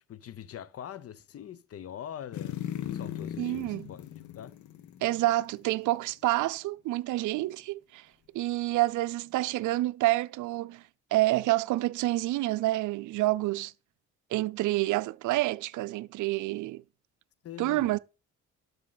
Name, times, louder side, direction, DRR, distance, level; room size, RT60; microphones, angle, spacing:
voice 1, 0.1-4.5 17.4-18.0, left 10 dB, 50° left, 0.7 m, -43 dB
sound 1, 2.3-5.7 6.0-6.1, left 10 dB, 75° left, 1.0 m, -38 dB
voice 2, 3.4-3.9 5.0-8.1 8.3-10.8 11.1-13.7 14.3-16.8 17.6-18.0, right 17 dB, 75° right, 0.5 m, -28 dB
12.0 x 5.2 x 4.0 m
cardioid pair, 90°, 30 cm